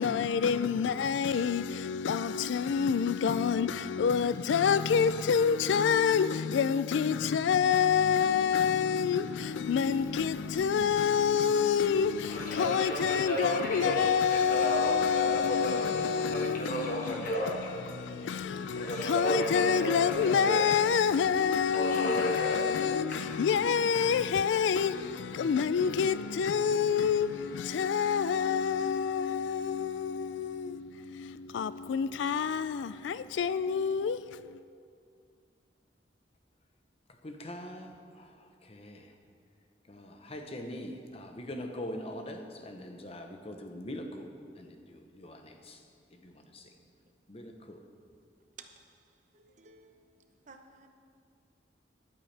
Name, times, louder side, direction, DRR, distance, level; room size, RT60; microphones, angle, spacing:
voice 1, 0.0-34.6, left 7 dB, 80° left, 0.3 m, -28 dB
Subway metro underground, 9.2-27.7, equal, 50° left, 1.4 m, -36 dB
voice 2, 37.2-38.3 38.7-39.0 39.9-44.3 44.6-45.8 46.2-46.6 47.3-47.8, left 1 dB, 35° left, 0.9 m, -42 dB
voice 3, 49.3-50.9, right 5 dB, 40° right, 0.8 m, -54 dB
14.0 x 11.5 x 3.4 m
head